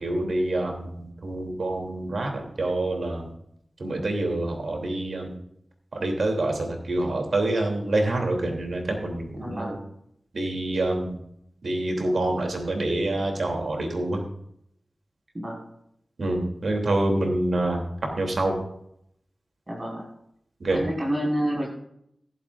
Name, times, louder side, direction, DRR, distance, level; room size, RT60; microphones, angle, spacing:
voice 1, 0.0-3.3 3.8-5.3 5.9-9.8 10.3-11.2 11.6-14.2 16.2-17.8 18.2-18.6 20.6-20.8, right 2 dB, 75° right, 2 dB, 3.0 m, -26 dB
voice 2, 9.4-9.8 15.4-15.6 19.7-20.0 20.7-21.7, equal, 30° right, -2 dB, 5.3 m, -28 dB
15.0 x 12.0 x 2.6 m, 0.73 s
wide cardioid pair, 65°, 0 cm